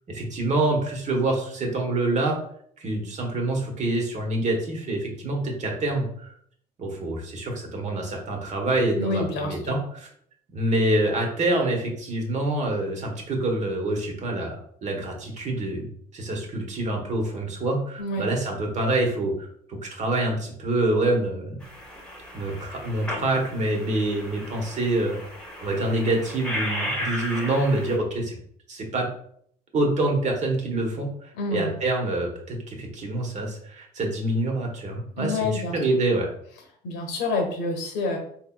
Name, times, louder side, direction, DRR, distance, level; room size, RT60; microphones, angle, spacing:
voice 1, 0.1-2.4 2.8-6.3 6.8-10.1 10.5-15.9 16.1-19.3 19.8-21.6 22.3-25.2 25.6-28.4 28.7-29.1 29.7-36.3, right 2 dB, 45° right, 1 dB, 1.1 m, -26 dB
voice 2, 9.0-9.7 18.0-18.3 31.3-31.8 35.2-35.8 36.8-38.2, left 2 dB, 90° left, 2 dB, 1.0 m, -28 dB
sound 1, 21.6-28.0, equal, 5° left, 1.1 m, -35 dB
4.4 x 3.2 x 2.3 m, 0.65 s
cardioid pair, 110°, 17 cm